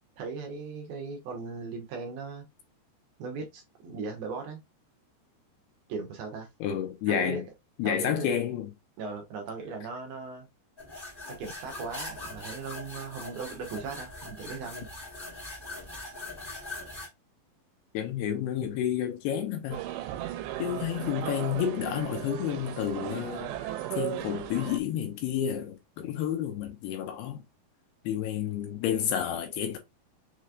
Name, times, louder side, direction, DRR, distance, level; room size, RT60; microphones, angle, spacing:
voice 1, 0.2-2.4 3.2-4.6 5.9-6.5 7.1-7.4 7.8-8.3 9.0-10.5 11.4-14.9, right 4 dB, 70° right, 2.6 m, -38 dB
voice 2, 6.6-7.4 7.8-8.7 17.9-19.8 20.6-27.4 28.0-29.8, left 9 dB, 80° left, 2.6 m, -30 dB
sound 1, 10.8-17.1, left 2 dB, 10° left, 1.9 m, -41 dB
sound 2, 19.7-24.8, right 13 dB, 85° right, 2.9 m, -36 dB
6.6 x 3.2 x 2.4 m
omnidirectional pair, 5.1 m